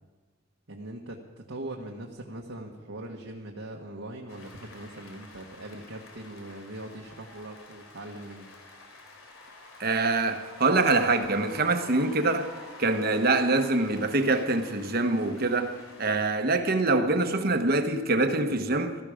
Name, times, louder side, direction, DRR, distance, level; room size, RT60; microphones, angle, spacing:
voice 1, 0.7-1.2 1.5-8.5, right 1 dB, 70° right, 1.4 m, -41 dB
sound 1, 4.3-16.3, left 2 dB, 80° left, 3.1 m, -49 dB
voice 2, 9.8-19.0, right 3 dB, 45° right, 1.2 m, -25 dB
17.0 x 14.0 x 5.0 m
head